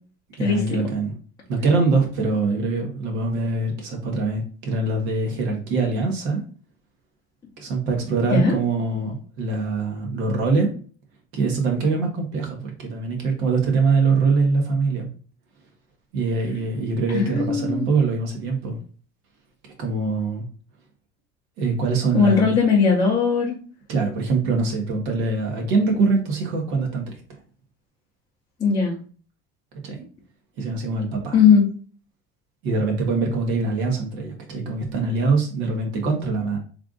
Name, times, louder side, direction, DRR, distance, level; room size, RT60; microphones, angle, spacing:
voice 1, 0.4-1.1 1.5-6.4 7.6-10.7 11.3-15.1 16.1-18.8 19.8-20.5 21.6-22.5 23.9-27.0 29.8-30.1 30.6-31.4 32.6-36.6, right 4 dB, 65° right, 2 dB, 1.4 m, -23 dB
voice 2, 17.1-17.9 22.1-23.6 28.6-29.0 31.3-31.7, left 6 dB, 10° left, -5 dB, 0.6 m, -18 dB
3.4 x 2.5 x 3.7 m, 0.40 s
cardioid pair, 175°, 29 cm